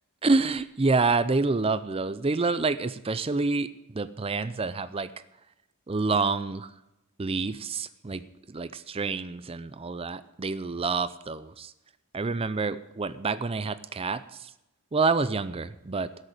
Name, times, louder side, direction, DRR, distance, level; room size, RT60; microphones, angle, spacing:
voice 1, 0.2-5.1 5.9-6.7 7.2-11.7 12.1-14.5 14.9-16.1, right 3 dB, 25° right, 14 dB, 0.5 m, -28 dB
13.0 x 6.4 x 9.0 m, 0.94 s
head